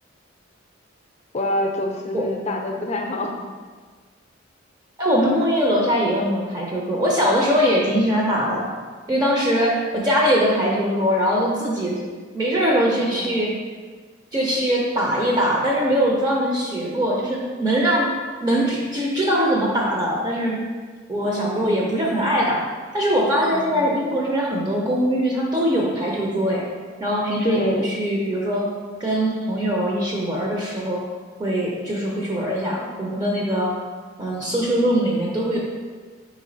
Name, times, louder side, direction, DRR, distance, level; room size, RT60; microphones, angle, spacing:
voice 1, 1.3-3.5 13.0-13.4 21.2-21.7 23.5-23.8 27.4-27.9, left 1 dB, 35° left, 2 dB, 0.5 m, -26 dB
voice 2, 5.0-8.6 9.1-12.0 12.3-13.5 14.3-18.1 18.4-20.6 21.1-22.6 22.9-26.7 27.0-28.7 29.0-31.0 31.4-33.7 34.2-35.6, equal, 20° right, -3 dB, 0.5 m, -21 dB
4.4 x 3.1 x 3.9 m, 1.5 s
head